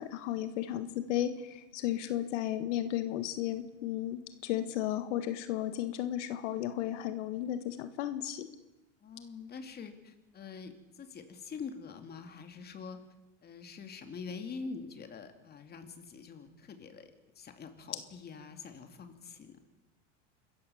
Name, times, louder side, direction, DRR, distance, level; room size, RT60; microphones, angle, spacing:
voice 1, 0.0-8.5, left 12 dB, 80° left, 10 dB, 1.7 m, -34 dB
voice 2, 9.0-10.7 11.0-13.0 13.4-19.6, left 5 dB, 25° left, 6 dB, 2.7 m, -45 dB
26.0 x 14.5 x 7.2 m, 1.0 s
supercardioid pair, 130°, 36 cm